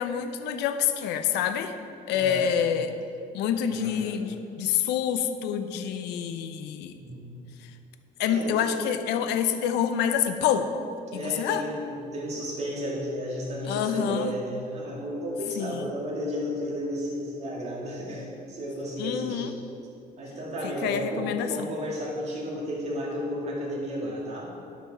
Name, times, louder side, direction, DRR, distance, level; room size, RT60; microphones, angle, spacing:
voice 1, 0.0-1.7 2.1-2.9 3.3-6.9 8.2-10.7 11.1-11.6 13.7-14.3 15.6-15.9 19.0-19.5 20.6-21.5, left 8 dB, 85° left, 9 dB, 0.6 m, -27 dB
voice 2, 2.1-2.5 3.7-4.1 6.9-7.4 8.3-8.7 11.1-19.5 20.2-24.5, equal, 40° right, -4 dB, 2.1 m, -33 dB
11.0 x 6.1 x 4.1 m, 2.6 s
cardioid pair, 110°, 17 cm